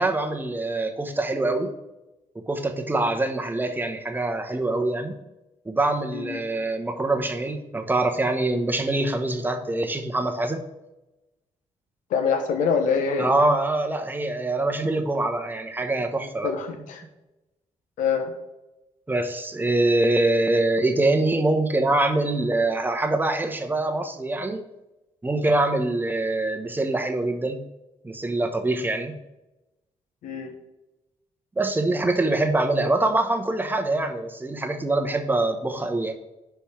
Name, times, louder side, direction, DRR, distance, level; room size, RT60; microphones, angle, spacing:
voice 1, 0.0-1.7 2.5-5.2 5.6-10.6 13.2-16.5 19.1-24.6 25.2-27.6 28.0-29.1 31.6-36.1, right 2 dB, 15° right, 4 dB, 0.9 m, -24 dB
voice 2, 12.1-13.3 16.4-17.0 18.0-18.3 30.2-30.5, left 6 dB, 90° left, 5 dB, 1.1 m, -25 dB
5.3 x 4.5 x 5.0 m, 0.99 s
cardioid pair, 75°, 13 cm